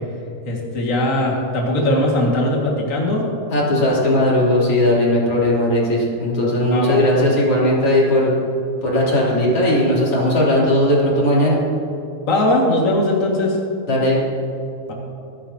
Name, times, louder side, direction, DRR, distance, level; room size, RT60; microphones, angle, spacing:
voice 1, 0.4-3.3 3.7-3.8 6.7-7.0 12.2-13.6 14.9-15.0, left 1 dB, 65° left, -2 dB, 0.7 m, -19 dB
voice 2, 3.5-8.3 8.8-11.6 13.9-14.2, left 1 dB, 35° left, -6 dB, 3.8 m, -17 dB
26.0 x 11.0 x 2.9 m, 2.8 s
omnidirectional pair, 5.0 m